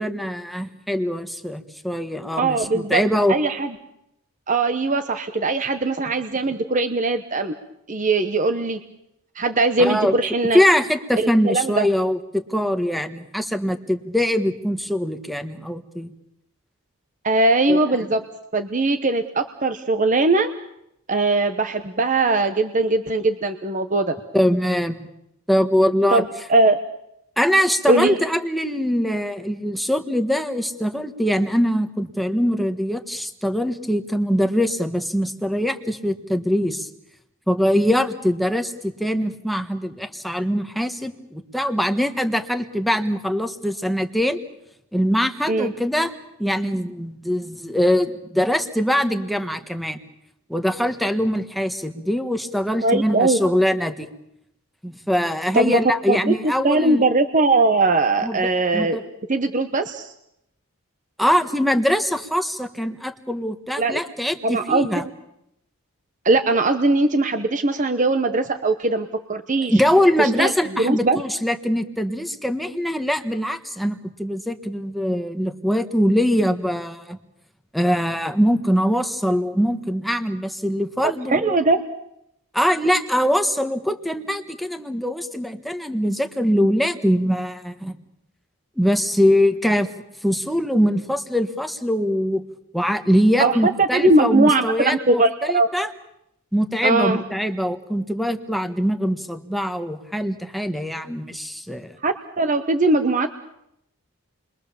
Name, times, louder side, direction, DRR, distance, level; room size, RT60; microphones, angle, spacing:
voice 1, 0.0-3.3 9.8-10.1 10.5-16.1 17.7-17.8 24.3-25.0 25.5-26.2 27.4-36.9 37.5-44.4 44.9-46.1 46.4-50.0 50.5-54.1 54.8-57.0 58.2-59.1 61.2-65.0 69.7-77.2 77.7-81.6 82.5-88.0 88.8-89.9 90.2-92.4 92.7-95.9 96.5-101.9, equal, ahead, 7 dB, 1.4 m, -22 dB
voice 2, 2.4-3.0 3.3-3.7 4.5-7.5 7.9-8.8 9.3-10.6 11.2-11.9 17.2-18.2 18.5-20.5 21.1-24.1 26.1-26.8 27.9-28.2 45.5-45.7 52.8-53.4 55.5-55.8 56.1-56.3 56.6-59.0 59.3-60.1 63.8-64.0 64.4-65.1 66.2-69.7 70.2-70.5 70.8-71.2 81.0-81.8 93.4-95.7 96.8-97.2 102.0-103.3, right 2 dB, 35° right, 7 dB, 1.0 m, -20 dB
29.5 x 23.0 x 7.1 m, 0.80 s
head